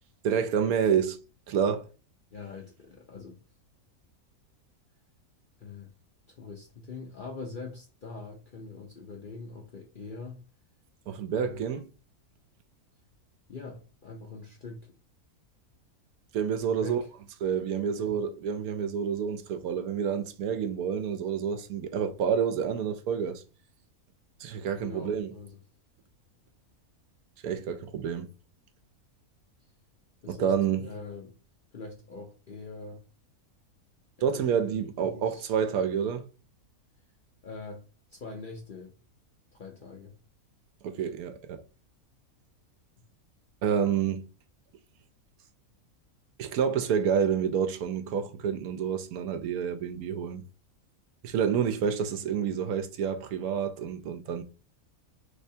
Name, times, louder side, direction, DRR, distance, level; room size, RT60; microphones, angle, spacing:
voice 1, 0.2-1.2 1.5-1.9 11.1-11.8 16.3-17.0 17.4-23.4 24.4-25.3 27.4-28.3 30.3-30.9 34.2-36.2 40.8-41.6 43.6-44.3 46.4-50.4 51.2-54.4, right 7 dB, 80° right, 1.1 m, -28 dB
voice 2, 2.3-3.4 5.6-5.9 6.3-10.4 11.3-11.6 13.5-14.9 16.7-17.1 17.9-18.2 24.8-25.6 30.2-30.5 30.8-31.4 31.7-33.0 34.2-35.9 37.4-37.8 38.1-38.9 39.5-40.1, left 4 dB, 55° left, 0.6 m, -43 dB
3.3 x 3.2 x 2.7 m
omnidirectional pair, 1.6 m